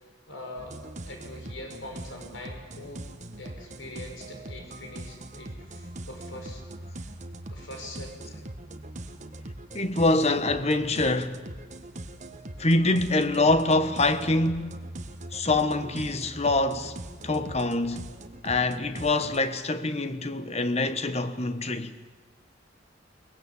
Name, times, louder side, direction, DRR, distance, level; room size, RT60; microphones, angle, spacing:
voice 1, 0.3-0.8 1.1-3.0 3.4-6.6 7.5-8.4, left 1 dB, 80° left, 5.7 m, -43 dB
sound 1, 0.6-19.5, right 1 dB, 40° right, 1.3 m, -41 dB
voice 2, 9.7-11.4 12.6-14.8 15.3-16.9 17.2-18.1 18.4-21.9, left 2 dB, 35° left, 1.2 m, -25 dB
22.5 x 19.5 x 8.7 m
head